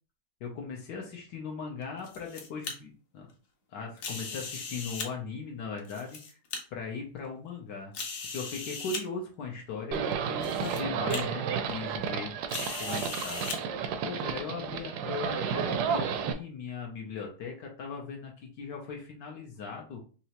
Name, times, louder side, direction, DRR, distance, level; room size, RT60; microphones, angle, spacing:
voice 1, 0.4-3.3 3.7-6.4 6.7-7.9 8.3-12.3 12.8-13.4 14.0-20.0, left 5 dB, 80° left, 0 dB, 1.4 m, -39 dB
sound 1, 1.8-2.7 4.0-5.1 5.8-6.6 7.2-7.3 7.9-9.0 9.9-10.0 10.4-10.8 11.1-11.2 12.5-13.6, left 5 dB, 60° left, 1.1 m, -38 dB
Livestock farm animals working animals, 9.9-16.3, right 7 dB, 75° right, 1.1 m, -32 dB
4.5 x 2.9 x 2.9 m, 0.38 s
omnidirectional pair, 1.9 m